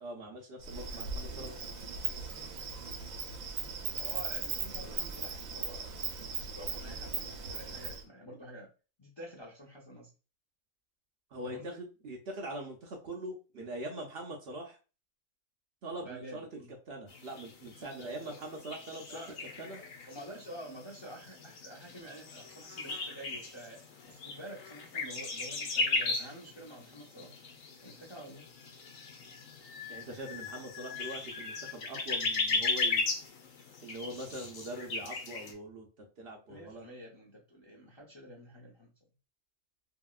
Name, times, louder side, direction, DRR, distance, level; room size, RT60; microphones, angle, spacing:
voice 1, 0.0-1.5 11.3-14.8 15.8-16.5 16.9-19.2 19.6-19.8 29.9-33.0 33.8-36.9, right 1 dB, 60° right, 0 dB, 0.7 m, -42 dB
Insect, 0.6-8.0, right 5 dB, 90° right, 1.0 m, -38 dB
voice 2, 4.0-6.0 6.3-8.7 9.0-10.1 11.4-11.8 16.0-16.7 18.0-18.4 19.1-19.4 20.1-23.8 24.1-27.3 27.8-28.5 36.5-38.9, right 1 dB, 30° left, -2 dB, 0.5 m, -48 dB
sound 1, 17.1-35.5, left 3 dB, 75° left, 1.1 m, -37 dB
2.9 x 2.7 x 2.3 m, 0.33 s
omnidirectional pair, 1.4 m